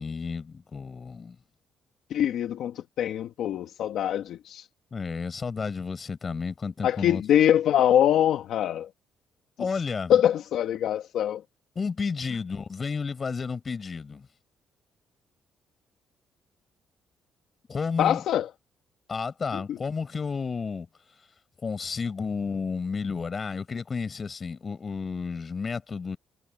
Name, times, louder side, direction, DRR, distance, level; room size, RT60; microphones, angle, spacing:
voice 1, 0.0-1.4 4.9-7.2 9.6-10.2 11.8-14.3 17.7-18.2 19.1-20.9 21.6-26.2, left 5 dB, 35° left, 6.0 m, -32 dB
voice 2, 2.1-4.7 6.8-8.9 10.1-11.4 18.0-18.5 19.5-19.8, left 10 dB, 75° left, 1.2 m, -24 dB
cardioid pair, 90°, 0 cm